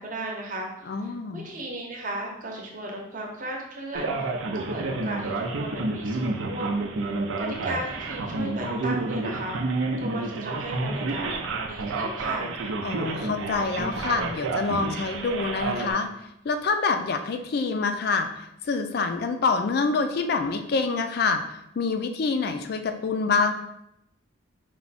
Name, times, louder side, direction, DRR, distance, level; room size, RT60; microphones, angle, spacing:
voice 1, 0.0-4.3 4.5-6.8 7.4-12.5, right 1 dB, 40° right, 0 dB, 0.8 m, -35 dB
voice 2, 0.9-1.5 12.8-16.1 16.4-21.4 21.8-23.5, left 4 dB, 50° left, 7 dB, 0.3 m, -26 dB
Male speech man speaking, 3.9-15.9, right 3 dB, 85° right, 0.6 m, -30 dB
4.5 x 2.2 x 4.0 m, 0.79 s
head